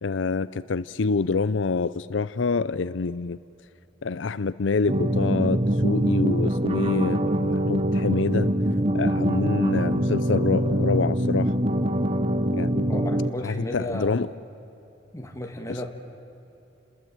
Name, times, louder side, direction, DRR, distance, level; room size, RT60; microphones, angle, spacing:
voice 1, 0.0-3.4 4.0-8.5 8.9-11.5 12.5-12.9 13.4-14.3 15.7-15.9, left 4 dB, 80° left, 16 dB, 0.6 m, -26 dB
sound 1, 4.9-13.3, right 1 dB, 30° right, 1.0 m, -24 dB
voice 2, 12.9-14.2 15.1-15.9, left 1 dB, 15° left, 3 dB, 2.5 m, -33 dB
29.5 x 21.0 x 9.0 m, 2.9 s
head